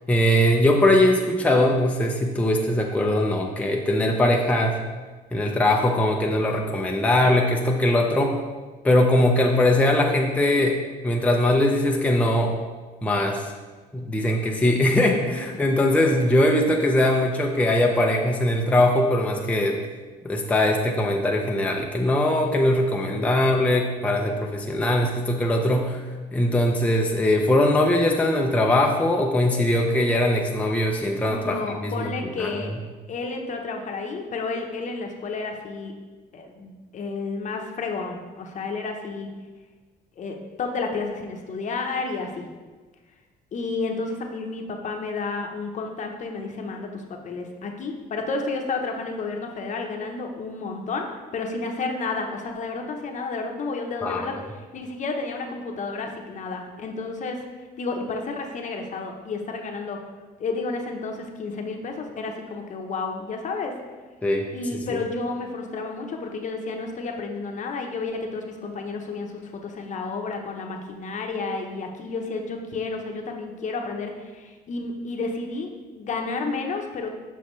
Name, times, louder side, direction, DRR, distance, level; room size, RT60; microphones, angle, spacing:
voice 1, 0.1-4.8 5.3-8.4 8.8-10.8 11.0-12.6 13.0-13.5 13.9-19.8 20.2-26.0 26.3-32.5 54.0-54.3 64.2-64.5 64.7-65.0, left 1 dB, 10° left, 0 dB, 0.6 m, -21 dB
voice 2, 31.3-32.7 33.1-35.9 36.3-39.3 40.2-42.5 43.5-51.1 51.3-54.3 54.7-57.4 57.8-60.0 60.4-63.7 64.5-77.1, left 3 dB, 45° left, 3 dB, 0.9 m, -31 dB
7.3 x 5.7 x 3.2 m, 1.3 s
cardioid pair, 110°, 17 cm